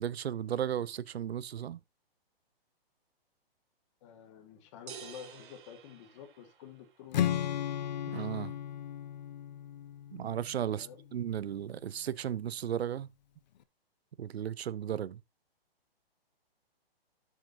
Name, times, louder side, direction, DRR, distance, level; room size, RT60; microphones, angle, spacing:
voice 1, 0.0-1.8 8.1-8.5 10.1-13.1 14.2-15.2, right 9 dB, 90° right, 0.6 m, -35 dB
voice 2, 4.0-7.6 10.7-11.0, left 9 dB, 30° left, 1.4 m, -50 dB
sound 1, 4.9-6.9, right 7 dB, 55° right, 1.4 m, -49 dB
Strum, 7.1-11.2, left 10 dB, 45° left, 0.8 m, -35 dB
13.0 x 6.5 x 2.6 m
hypercardioid pair, 155°, 30 cm